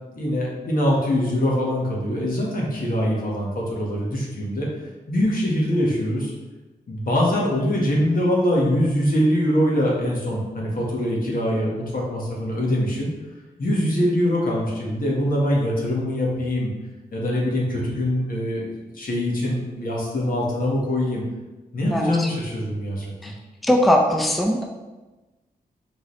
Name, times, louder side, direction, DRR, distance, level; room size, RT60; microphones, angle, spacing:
voice 1, 0.1-4.7 5.1-6.3 6.9-13.1 13.6-16.7 17.1-18.6 18.9-21.2 21.7-23.1, equal, 65° left, -3 dB, 1.4 m, -23 dB
voice 2, 21.9-22.3 23.2-23.3 23.7-24.6, equal, ahead, 1 dB, 0.5 m, -20 dB
3.9 x 3.8 x 3.2 m, 1.1 s
cardioid pair, 60°, 16 cm